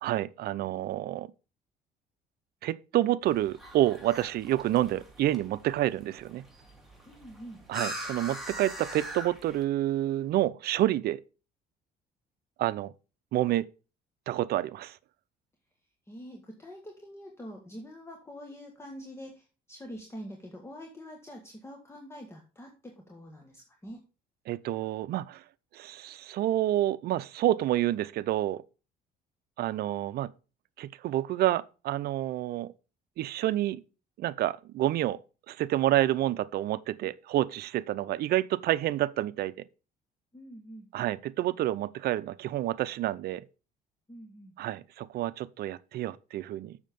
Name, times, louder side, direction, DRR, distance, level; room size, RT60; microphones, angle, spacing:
voice 1, 0.0-1.3 2.6-6.4 7.7-11.2 12.6-12.9 13.3-13.7 14.3-15.0 24.5-25.4 25.7-28.6 29.6-30.3 30.8-32.7 33.2-33.8 34.2-35.2 35.5-39.5 40.9-43.4 44.6-46.8, right 14 dB, 65° right, 0.6 m, -28 dB
sound 1, 3.2-9.6, right 1 dB, ahead, 3.0 m, -42 dB
voice 2, 7.1-7.6 16.1-24.0 40.3-40.9 44.1-44.5, equal, 15° left, 1.8 m, -45 dB
7.3 x 6.6 x 5.2 m
cardioid pair, 110°, 17 cm